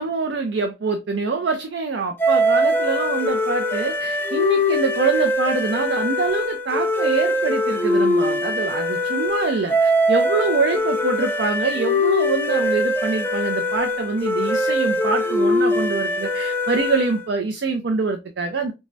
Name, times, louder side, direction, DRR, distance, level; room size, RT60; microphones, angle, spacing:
voice 1, 0.0-18.7, right 4 dB, 75° right, 0.4 m, -25 dB
sound 1, 2.2-17.3, left 1 dB, 10° left, 0.5 m, -22 dB
3.4 x 3.1 x 2.6 m
head